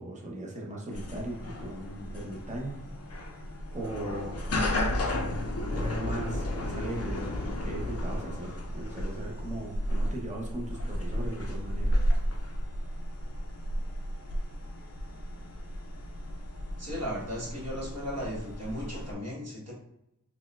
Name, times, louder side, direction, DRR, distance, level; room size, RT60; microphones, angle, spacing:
voice 1, 0.0-2.8 3.7-4.4 5.7-11.9, right 1 dB, 20° right, -2 dB, 0.8 m, -38 dB
sound 1, 0.9-19.1, equal, 45° left, 0.5 m, -33 dB
voice 2, 16.8-19.7, equal, 45° right, -5 dB, 1.4 m, -36 dB
4.1 x 2.2 x 2.4 m, 0.83 s
wide cardioid pair, 60°, 34 cm